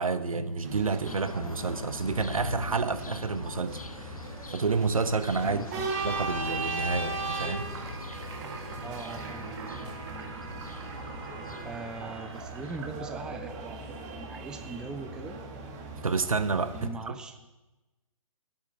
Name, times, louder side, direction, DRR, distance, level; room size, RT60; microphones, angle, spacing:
voice 1, 0.0-5.6 6.0-7.7 16.0-16.9, right 4 dB, 75° right, 1.0 m, -29 dB
sound 1, 0.6-16.9, right 3 dB, 30° right, 1.8 m, -38 dB
sound 2, 1.0-13.3, left 4 dB, 85° left, 0.8 m, -44 dB
sound 3, 3.6-13.4, right 4 dB, 50° right, 2.0 m, -47 dB
voice 2, 5.4-5.9 8.8-10.0 11.6-15.4 16.7-17.5, right 3 dB, 5° right, 0.5 m, -41 dB
9.2 x 7.2 x 8.9 m
figure-of-eight pair, 135°, 18 cm